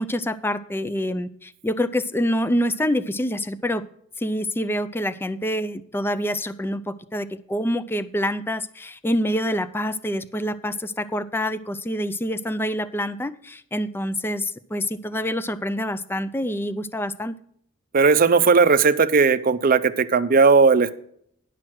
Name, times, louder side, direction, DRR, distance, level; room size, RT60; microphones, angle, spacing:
voice 1, 0.0-3.8 4.2-17.3, equal, 10° left, 13 dB, 0.3 m, -26 dB
voice 2, 17.9-20.9, right 4 dB, 40° right, 12 dB, 0.5 m, -17 dB
10.5 x 6.0 x 6.3 m, 0.67 s
head